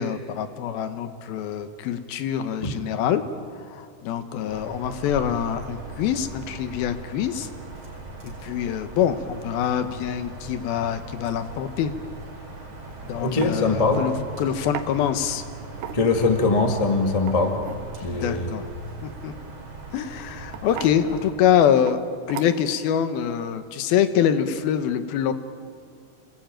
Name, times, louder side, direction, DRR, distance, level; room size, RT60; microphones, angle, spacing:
voice 1, 0.0-3.2 3.7-7.5 8.2-11.9 13.0-15.4 18.0-18.7 19.2-19.3 19.9-22.0 22.3-25.3, left 9 dB, 70° left, 10 dB, 2.7 m, -25 dB
sound 1, 4.5-21.3, right 2 dB, 40° right, 5.5 m, -39 dB
sound 2, 12.7-12.9 13.4-13.6 14.7-14.9 15.7-16.3 17.1-17.8 19.5-19.7 20.5-21.0 21.9-22.0 22.3-22.8, right 10 dB, 70° right, 2.2 m, -36 dB
voice 2, 13.1-14.0 15.9-17.6 18.0-18.5, left 3 dB, 50° left, 4 dB, 0.4 m, -22 dB
28.5 x 20.0 x 9.1 m, 2.2 s
omnidirectional pair, 4.8 m